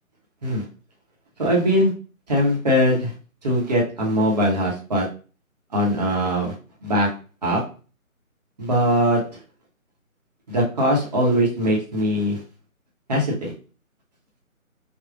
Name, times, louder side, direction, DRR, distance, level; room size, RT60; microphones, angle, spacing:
voice 1, 1.4-1.9 2.3-3.1 3.4-5.1 5.7-6.5 6.8-7.1 7.4-7.6 8.6-9.2 10.5-12.4 13.1-13.5, equal, 30° right, -3 dB, 1.0 m, -21 dB
5.1 x 2.4 x 2.3 m, 0.36 s
figure-of-eight pair, 160°, 41 cm